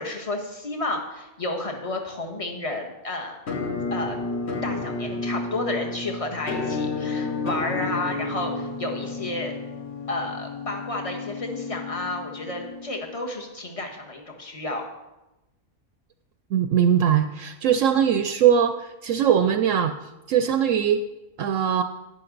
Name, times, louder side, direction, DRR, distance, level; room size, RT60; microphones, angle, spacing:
voice 1, 0.0-3.4 3.9-4.2 4.6-9.5 10.1-14.9, left 2 dB, 25° left, 2 dB, 1.3 m, -31 dB
Musical instrument, 3.5-13.3, left 3 dB, 55° left, 1.2 m, -31 dB
voice 2, 16.5-19.9 20.3-21.0 21.4-21.8, right 8 dB, 70° right, 8 dB, 0.9 m, -21 dB
11.0 x 10.0 x 3.9 m, 1.0 s
omnidirectional pair, 1.5 m